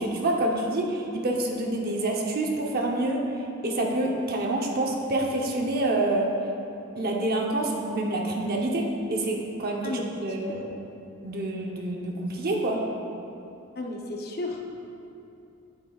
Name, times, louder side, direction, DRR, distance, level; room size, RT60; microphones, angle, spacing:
voice 1, 0.0-6.3 7.0-10.8 11.2-12.8, right 1 dB, 50° right, 0 dB, 0.8 m, -27 dB
voice 2, 13.8-14.8, left 2 dB, 50° left, 1 dB, 0.7 m, -33 dB
8.5 x 7.8 x 2.4 m, 2.7 s
head